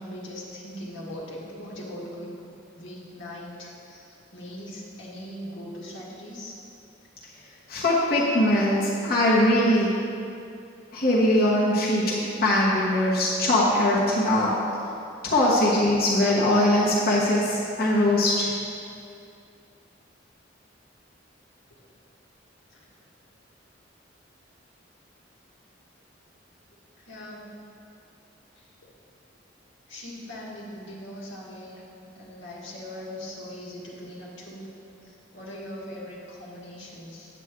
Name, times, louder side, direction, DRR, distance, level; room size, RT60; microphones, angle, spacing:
voice 1, 0.0-2.3 2.7-6.5 22.7-22.8 27.0-27.4 28.6-28.7 29.9-34.7 35.0-37.3, left 1 dB, 85° left, -5 dB, 1.8 m, -40 dB
voice 2, 7.7-9.9 10.9-14.5 15.2-18.5, left 1 dB, 55° left, -6 dB, 1.2 m, -21 dB
8.5 x 8.2 x 3.7 m, 2.5 s
head